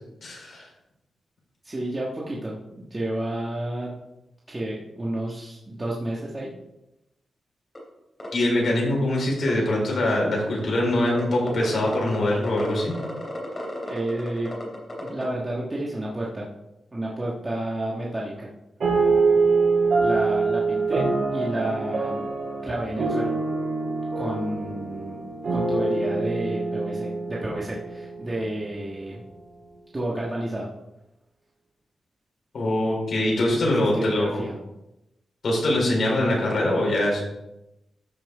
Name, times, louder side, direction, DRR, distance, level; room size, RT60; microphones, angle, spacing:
voice 1, 0.2-0.7 8.3-12.9 32.5-34.4 35.4-37.2, left 1 dB, 55° left, -3 dB, 4.6 m, -23 dB
voice 2, 1.6-3.9 4.5-6.5 13.9-14.7 15.0-16.5 16.9-18.5 20.0-22.3 22.6-23.3 24.1-25.2 25.5-29.2 29.9-30.7 33.6-34.6, right 1 dB, 20° right, -4 dB, 1.4 m, -31 dB
sound 1, 7.8-7.9 8.2-8.3 8.6-8.7 8.9-9.5 10.0-10.6 11.1-15.2, left 1 dB, 20° left, 3.2 m, -34 dB
sound 2, 18.8-28.5, right 4 dB, 55° right, 4.5 m, -25 dB
13.5 x 6.0 x 4.8 m, 0.92 s
wide cardioid pair, 170°, 0 cm